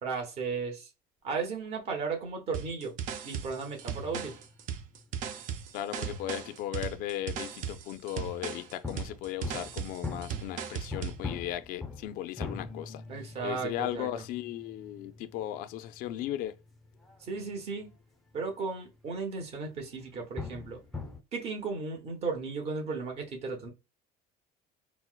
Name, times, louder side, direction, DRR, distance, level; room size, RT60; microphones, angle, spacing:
voice 1, 0.0-0.9 1.2-3.0 3.2-4.4 13.1-14.2 17.2-17.9 18.3-20.8 21.3-23.7, right 4 dB, 40° right, 1.0 m, -35 dB
sound 1, 2.5-11.2, right 8 dB, 55° right, 0.5 m, -37 dB
sound 2, 3.3-6.6 6.8-7.4 7.7-8.2 8.8-18.5 18.8-19.1 19.5-19.6 20.0-21.2, left 3 dB, ahead, 0.5 m, -43 dB
voice 2, 5.7-13.0 13.4-16.5, left 12 dB, 60° left, 0.4 m, -36 dB
4.4 x 2.0 x 2.2 m
cardioid pair, 150°, 16 cm